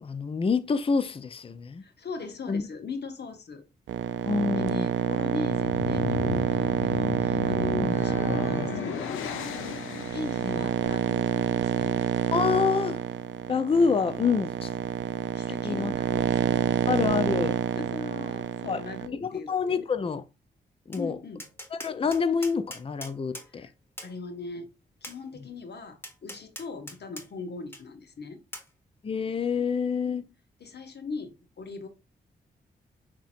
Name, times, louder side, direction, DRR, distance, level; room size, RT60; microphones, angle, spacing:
voice 1, 0.0-1.8 2.5-2.6 4.3-4.9 7.7-8.0 10.4-10.6 12.3-13.0 13.5-14.7 15.6-15.9 16.9-17.6 18.7-18.8 19.2-20.2 20.9-21.2 21.7-23.7 29.0-30.3, left 5 dB, 30° left, 0.5 m, -27 dB
voice 2, 1.8-3.6 4.1-4.2 4.5-12.0 15.3-16.7 17.8-19.9 20.9-21.4 23.5-23.7 24.0-24.7 25.0-28.4 30.6-31.9, left 4 dB, 55° left, 0.9 m, -39 dB
sound 1, 3.9-19.1, right 9 dB, 70° right, 0.5 m, -28 dB
sound 2, 5.3-10.7, left 7 dB, 80° left, 0.6 m, -34 dB
Tap, 20.9-21.0 21.4-23.5 24.0-24.1 25.0-25.2 26.0-27.3 27.7-27.8 28.5-28.7, left 1 dB, 10° left, 1.1 m, -41 dB
6.0 x 2.9 x 2.5 m
hypercardioid pair, 40°, 20 cm